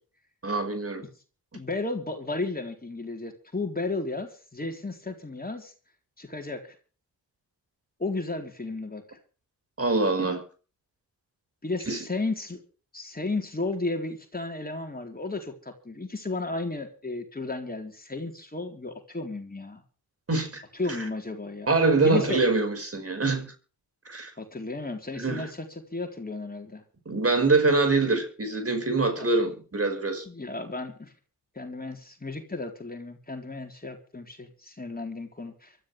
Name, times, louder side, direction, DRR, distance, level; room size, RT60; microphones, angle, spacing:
voice 1, 0.4-1.0 9.8-10.4 11.9-12.0 20.3-20.6 21.7-23.5 24.1-24.3 25.2-25.5 27.1-30.3, right 3 dB, 35° right, 5.5 m, -24 dB
voice 2, 1.5-5.7 6.2-6.8 8.0-9.0 11.6-12.6 12.9-19.8 20.8-21.7 22.0-22.4 24.4-26.8 29.2-29.5 30.3-31.1 31.5-35.8, left 3 dB, 20° left, 4.1 m, -33 dB
24.0 x 13.5 x 3.4 m
supercardioid pair, 50°, 40 cm